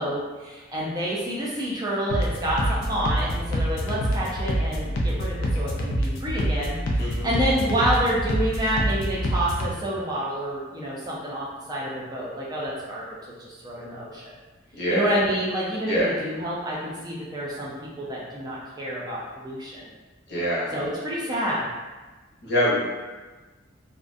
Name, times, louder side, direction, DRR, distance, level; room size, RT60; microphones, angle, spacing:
voice 1, 0.0-14.3 14.9-19.8 20.7-21.7, right 1 dB, 20° right, -5 dB, 0.4 m, -28 dB
sound 1, 2.1-9.7, equal, 85° left, 0.4 m, -26 dB
voice 2, 14.8-15.1 15.9-16.1 20.3-20.7 22.4-22.8, equal, 55° left, -6 dB, 0.7 m, -24 dB
2.4 x 2.1 x 2.5 m, 1.2 s
head